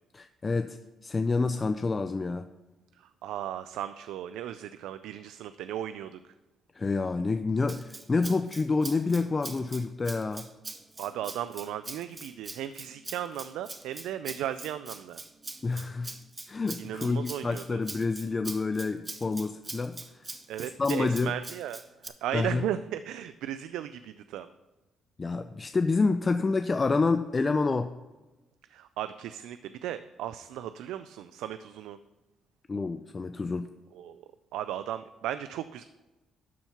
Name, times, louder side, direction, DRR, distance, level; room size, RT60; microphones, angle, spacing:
voice 1, 0.1-0.8 1.0-2.5 6.8-10.5 15.6-16.1 16.5-20.2 20.8-21.3 22.3-22.6 25.2-27.9 32.7-33.7, left 3 dB, 30° left, 9 dB, 0.4 m, -28 dB
voice 2, 3.2-6.2 11.0-15.2 16.8-17.8 20.5-24.5 28.7-32.0 34.0-34.2 34.5-35.8, right 11 dB, 90° right, 12 dB, 0.3 m, -36 dB
Rattle (instrument), 7.7-22.1, right 3 dB, 25° right, 0.8 m, -43 dB
12.0 x 4.5 x 5.7 m, 1.1 s
cardioid pair, 90°, 0 cm